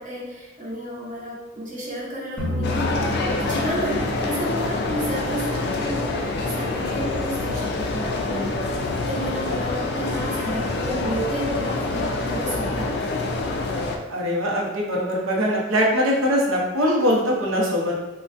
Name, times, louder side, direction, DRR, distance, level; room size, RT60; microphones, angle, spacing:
voice 1, 0.0-2.9 3.3-8.5 8.9-12.9, right 1 dB, 40° right, -5 dB, 0.8 m, -31 dB
sound 1, 2.4-5.6, left 1 dB, 5° left, 0.8 m, -30 dB
sound 2, 2.6-14.0, left 3 dB, 50° left, 0.3 m, -26 dB
voice 2, 14.1-17.9, equal, 75° right, -2 dB, 0.7 m, -22 dB
3.7 x 2.1 x 2.5 m, 1.1 s
head